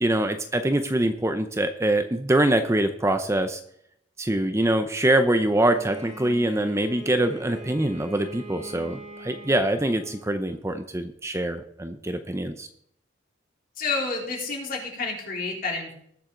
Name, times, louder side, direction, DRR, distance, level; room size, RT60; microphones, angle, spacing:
voice 1, 0.0-3.6 4.2-12.7, right 1 dB, 15° right, 8 dB, 0.7 m, -24 dB
Bowed string instrument, 5.5-10.6, right 1 dB, 35° right, 3.6 m, -42 dB
voice 2, 13.8-15.9, left 3 dB, 50° left, -1 dB, 3.7 m, -29 dB
20.0 x 7.6 x 3.8 m, 0.70 s
head